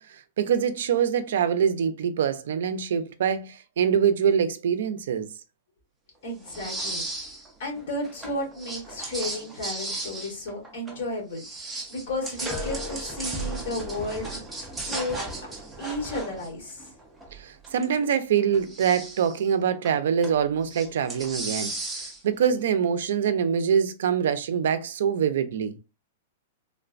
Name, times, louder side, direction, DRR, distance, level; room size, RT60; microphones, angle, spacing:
voice 1, 0.1-5.3 17.3-21.7 22.2-25.7, right 8 dB, 65° right, 0.4 m, -24 dB
voice 2, 6.2-7.0 7.6-14.4 14.9-15.2 15.8-16.9, left 1 dB, 55° left, 1.3 m, -33 dB
sound 1, 6.4-7.5 7.8-11.1 11.3-17.9 18.4-19.4 19.9-20.4 20.7-22.5, right 2 dB, 5° right, 0.4 m, -35 dB
3.2 x 2.1 x 2.4 m
supercardioid pair, 175°, 0 cm